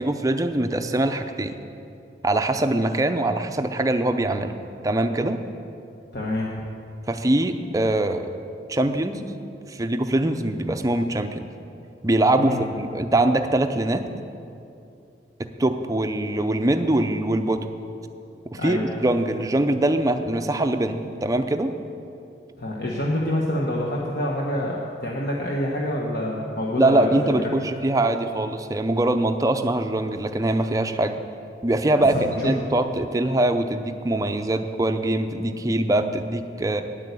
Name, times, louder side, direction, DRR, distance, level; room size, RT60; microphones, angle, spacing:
voice 1, 0.0-1.5 2.2-4.5 4.8-5.4 7.1-8.3 8.7-9.3 9.7-11.4 12.0-14.0 15.4-17.6 18.5-21.7 26.8-31.2 31.6-36.8, right 1 dB, 20° right, 7 dB, 0.5 m, -23 dB
voice 2, 6.1-6.5 12.4-12.7 18.5-18.9 22.6-27.5 32.1-32.5, left 1 dB, 55° left, -3 dB, 1.1 m, -27 dB
9.2 x 8.6 x 8.2 m, 2.6 s
head